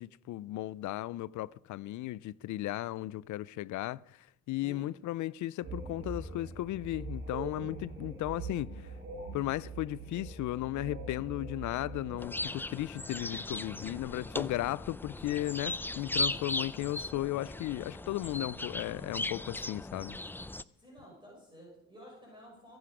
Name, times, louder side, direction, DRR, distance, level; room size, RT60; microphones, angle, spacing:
voice 1, 0.0-4.0 4.5-8.7 9.3-20.2, left 16 dB, 75° left, 0.5 m, -35 dB
sound 1, 5.6-12.2, right 3 dB, 40° right, 2.8 m, -42 dB
sound 2, 12.2-20.6, left 2 dB, 5° left, 0.4 m, -37 dB
voice 2, 20.8-22.8, equal, 15° right, 5.9 m, -52 dB
23.5 x 7.9 x 5.0 m
cardioid pair, 90°, 30 cm